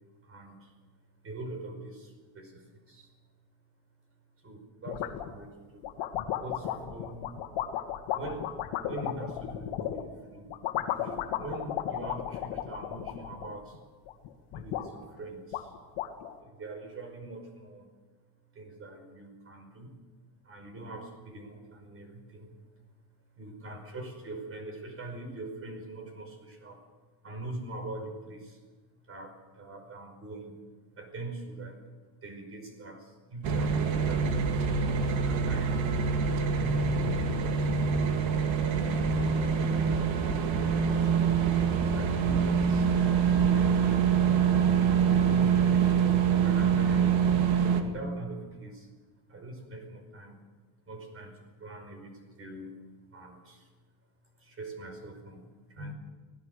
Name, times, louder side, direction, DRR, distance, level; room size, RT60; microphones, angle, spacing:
voice 1, 0.1-3.2 4.4-5.9 6.3-7.4 8.1-8.6 8.9-10.6 10.9-13.9 14.5-15.9 16.4-17.9 18.5-20.0 20.4-26.9 27.2-28.6 29.1-30.7 30.9-34.6 35.2-36.0 36.4-38.1 41.0-42.9 43.3-44.3 45.0-47.2 47.5-48.9 49.3-50.4 50.9-52.8 53.1-53.7 54.4-55.9, right 2 dB, 25° right, 6 dB, 5.2 m, -43 dB
sound 1, 4.9-5.4 5.8-10.1 10.5-13.8 14.1-14.9 15.2-15.3 15.5-16.3, left 11 dB, 70° left, 2.2 m, -34 dB
sound 2, 33.4-47.8, right 6 dB, 65° right, 2.6 m, -25 dB
24.5 x 18.5 x 6.7 m, 1.4 s
cardioid pair, 145°, 49 cm